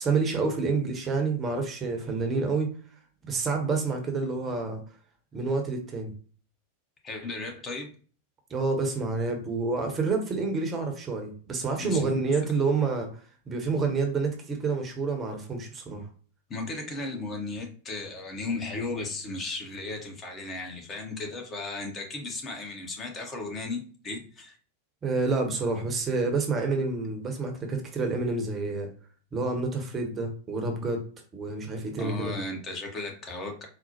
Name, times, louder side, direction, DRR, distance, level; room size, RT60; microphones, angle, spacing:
voice 1, 0.0-2.7 3.2-4.8 5.3-6.1 8.5-13.1 13.5-16.1 25.0-28.9 29.3-31.0 31.3-32.3, right 4 dB, 25° right, 3 dB, 0.8 m, -28 dB
voice 2, 7.0-7.9 11.8-12.3 16.5-24.6 32.0-33.7, left 3 dB, 25° left, 2 dB, 0.7 m, -35 dB
4.1 x 2.0 x 2.8 m, 0.41 s
figure-of-eight pair, 90°, 0 cm